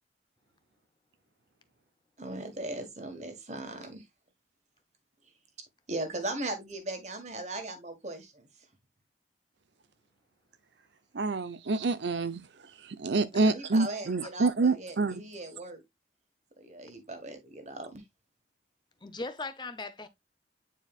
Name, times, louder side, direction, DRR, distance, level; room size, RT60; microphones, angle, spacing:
voice 1, 2.2-4.0 5.9-8.5 13.4-15.8 16.6-18.0, right 2 dB, 40° right, 1.5 m, -38 dB
voice 2, 11.1-12.4 12.9-15.2, right 3 dB, 70° right, 0.7 m, -27 dB
voice 3, 19.0-20.1, left 3 dB, 25° left, 0.7 m, -38 dB
9.0 x 4.6 x 2.3 m
head